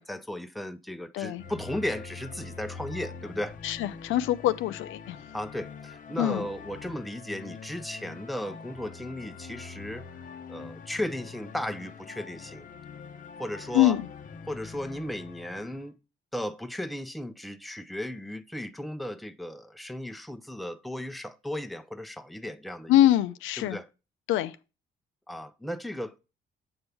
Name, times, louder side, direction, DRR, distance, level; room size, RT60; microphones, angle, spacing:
voice 1, 0.0-3.6 5.3-10.1 10.5-12.6 13.4-14.0 14.5-16.0 16.3-23.0 23.6-23.9 25.3-26.1, left 1 dB, ahead, 0.6 m, -35 dB
sound 1, 1.4-15.9, left 5 dB, 40° left, 0.7 m, -44 dB
voice 2, 3.6-5.2 6.2-6.5 13.7-14.0 22.9-23.8 24.3-24.5, left 13 dB, 90° left, 0.5 m, -24 dB
7.9 x 5.4 x 3.4 m
cardioid pair, 90°, 20 cm